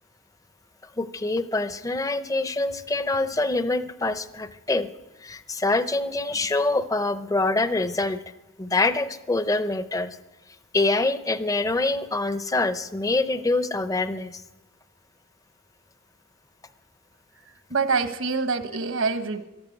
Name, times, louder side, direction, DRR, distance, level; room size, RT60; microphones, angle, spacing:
voice 1, 1.0-4.9 5.2-8.2 8.6-10.2 10.7-14.4, left 2 dB, 15° left, 12 dB, 0.6 m, -25 dB
voice 2, 17.7-19.5, right 4 dB, 70° right, 9 dB, 1.2 m, -25 dB
12.5 x 12.5 x 8.0 m, 0.99 s
head